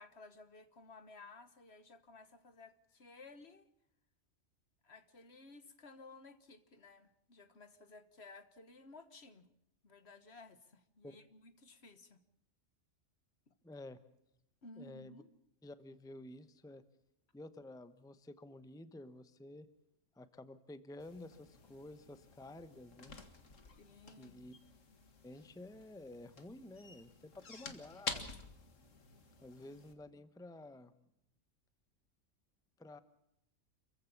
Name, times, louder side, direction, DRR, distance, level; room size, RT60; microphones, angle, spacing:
voice 1, 0.0-3.7 4.8-9.5 9.8-12.2 13.5-13.6 14.6-15.3 23.8-24.5, left 3 dB, 55° left, 11 dB, 1.7 m, -56 dB
voice 2, 13.6-14.0 14.8-15.1 15.6-16.8 17.3-19.7 20.2-23.1 24.2-24.5 25.2-27.1 27.3-28.2 29.4-30.9 32.8-33.0, left 1 dB, 5° left, 12 dB, 0.9 m, -51 dB
sound 1, 21.0-29.9, left 4 dB, 85° left, 2.2 m, -50 dB
27.5 x 15.0 x 7.2 m, 0.80 s
omnidirectional pair, 1.3 m